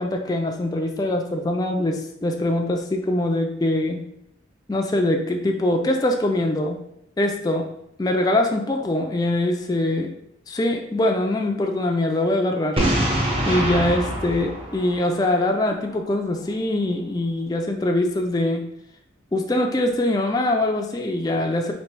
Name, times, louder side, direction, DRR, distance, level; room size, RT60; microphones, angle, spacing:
voice 1, 0.0-4.0 4.7-6.8 7.2-7.7 8.0-10.1 10.5-12.8 13.5-18.6 19.3-21.7, left 1 dB, 20° left, 3 dB, 0.3 m, -23 dB
Boom, 12.8-15.6, right 1 dB, 30° right, 0.7 m, -24 dB
3.1 x 2.9 x 4.5 m, 0.77 s
head